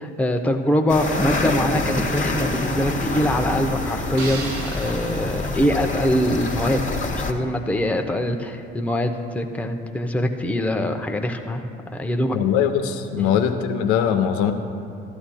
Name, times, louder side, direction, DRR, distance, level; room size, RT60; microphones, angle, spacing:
voice 1, 0.0-6.8 7.1-11.6 11.9-12.4 13.2-13.3, equal, 5° left, 4 dB, 0.7 m, -23 dB
sound 1, 0.9-7.3, left 2 dB, 25° left, 1.2 m, -26 dB
sound 2, 4.2-6.5, right 3 dB, 75° right, 1.5 m, -37 dB
voice 2, 12.3-14.5, left 8 dB, 65° left, 7 dB, 0.8 m, -21 dB
14.0 x 11.5 x 2.2 m, 2.5 s
hypercardioid pair, 60°, 30 cm